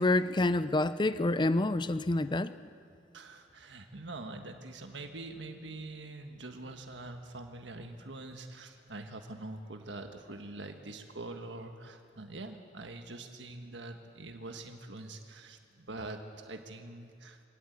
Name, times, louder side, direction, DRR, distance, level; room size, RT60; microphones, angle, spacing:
voice 1, 0.0-2.5, left 2 dB, 25° left, 14 dB, 0.5 m, -27 dB
voice 2, 3.1-17.4, right 2 dB, 85° right, 5 dB, 1.5 m, -44 dB
23.5 x 17.5 x 8.2 m, 2.4 s
head